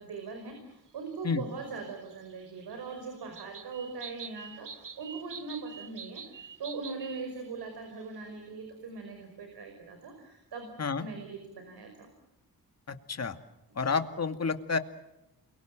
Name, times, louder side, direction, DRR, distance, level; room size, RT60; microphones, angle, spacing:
voice 1, 0.0-10.7 11.0-12.1 13.8-13.9, right 4 dB, 85° right, 4 dB, 5.4 m, -41 dB
sound 1, 2.1-7.3 7.6-7.7 8.0-8.2, right 6 dB, 55° right, 2.0 m, -46 dB
voice 2, 12.9-13.4 13.8-14.8, left 5 dB, 40° left, 8 dB, 2.3 m, -30 dB
29.0 x 23.5 x 7.6 m, 0.91 s
cardioid pair, 80°, 38 cm